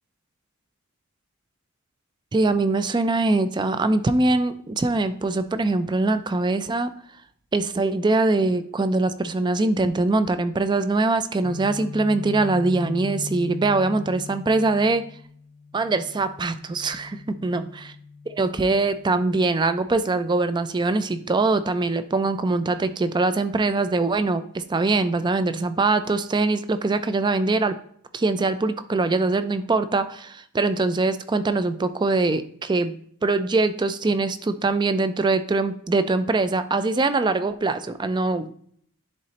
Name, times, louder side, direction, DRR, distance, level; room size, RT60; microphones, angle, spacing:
voice 1, 2.3-6.9 7.5-15.0 15.7-17.7 18.3-27.8 28.1-38.5, right 3 dB, 20° right, 11 dB, 0.4 m, -23 dB
Guitar, 11.4-19.3, left 4 dB, 5° left, 0.8 m, -38 dB
10.5 x 4.0 x 2.8 m, 0.63 s
head